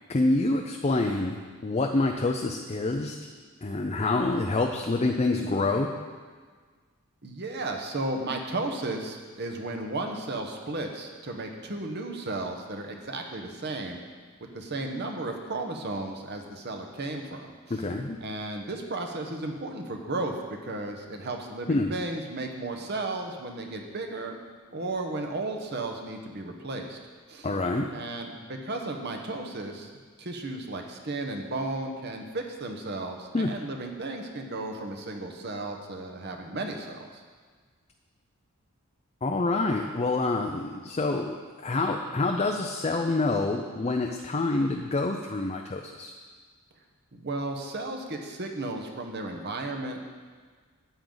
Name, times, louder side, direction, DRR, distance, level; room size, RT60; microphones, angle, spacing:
voice 1, 0.1-3.2 3.6-5.9 17.7-18.2 21.7-21.9 27.4-27.9 33.3-33.5 39.2-46.1, left 2 dB, 30° left, 2 dB, 0.5 m, -27 dB
voice 2, 7.2-14.0 14.5-17.8 18.2-20.3 20.6-24.4 24.7-27.0 27.3-27.5 27.9-29.9 30.2-37.2 47.1-50.0, right 2 dB, 50° right, 3 dB, 1.1 m, -34 dB
12.5 x 8.8 x 3.9 m, 1.5 s
head